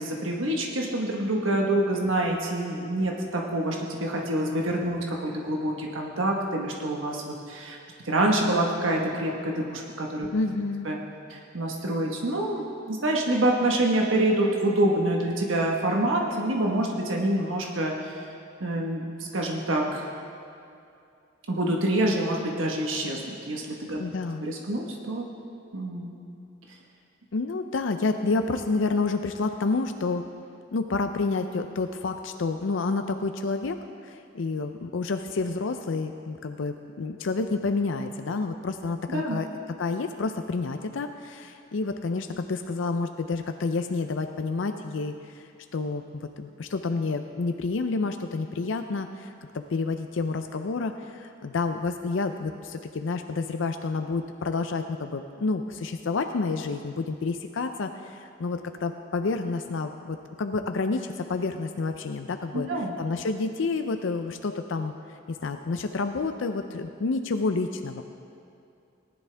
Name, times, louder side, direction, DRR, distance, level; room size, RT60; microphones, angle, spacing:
voice 1, 0.0-7.8 8.0-10.3 10.8-11.0 11.3-18.1 18.6-20.1 21.5-24.0 24.4-25.3 25.7-26.1 39.1-39.4 62.5-62.9, right 1 dB, 80° right, -1 dB, 1.3 m, -26 dB
voice 2, 10.3-10.9 24.0-24.5 27.3-30.2 30.7-33.8 34.0-39.5 39.8-62.7 63.0-64.9 65.3-68.0, left 3 dB, 70° left, 7 dB, 0.5 m, -29 dB
19.0 x 11.0 x 3.4 m, 2.5 s
head